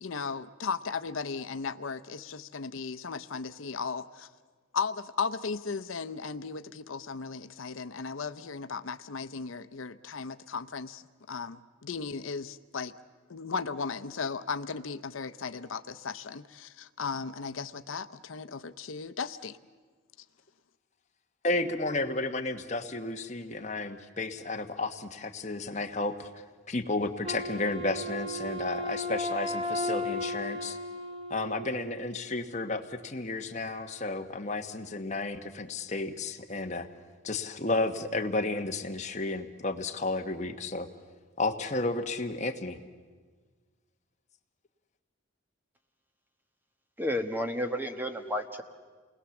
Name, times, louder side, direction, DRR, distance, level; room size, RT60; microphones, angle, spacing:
voice 1, 0.0-4.3 4.7-11.0 11.3-12.9 13.3-19.6, left 5 dB, 85° left, 12 dB, 0.7 m, -36 dB
voice 2, 21.4-26.3 26.7-30.8 31.3-36.9 37.2-40.9 41.4-42.8, left 2 dB, 35° left, 5 dB, 1.3 m, -32 dB
Wind instrument woodwind instrument, 27.2-32.2, left 1 dB, 25° right, 0.9 m, -35 dB
voice 3, 47.0-48.6, left 1 dB, 10° right, 6 dB, 1.2 m, -31 dB
28.5 x 20.5 x 7.1 m, 1.5 s
head